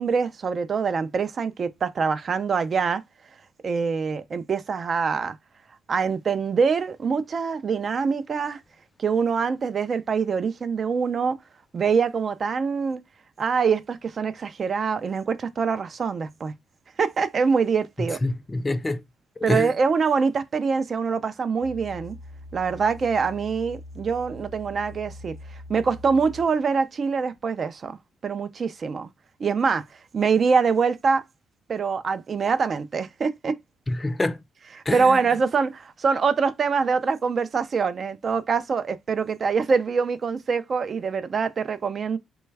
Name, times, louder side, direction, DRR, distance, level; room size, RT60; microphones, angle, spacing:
voice 1, 0.0-3.0 3.6-5.4 5.9-8.6 9.0-11.4 11.7-13.0 13.4-16.5 17.0-18.2 19.4-22.2 22.5-25.3 25.7-28.0 28.2-29.1 29.4-29.8 30.1-31.2 31.7-33.6 34.7-42.2, right 5 dB, 45° right, 0.4 m, -24 dB
voice 2, 18.0-19.0 19.4-19.7 33.9-34.4 34.9-35.2, left 2 dB, 20° left, 0.5 m, -26 dB
sound 1, 21.6-26.7 27.3-27.4, left 1 dB, 80° right, 0.9 m, -43 dB
3.2 x 2.2 x 3.2 m
cardioid pair, 90°, 0 cm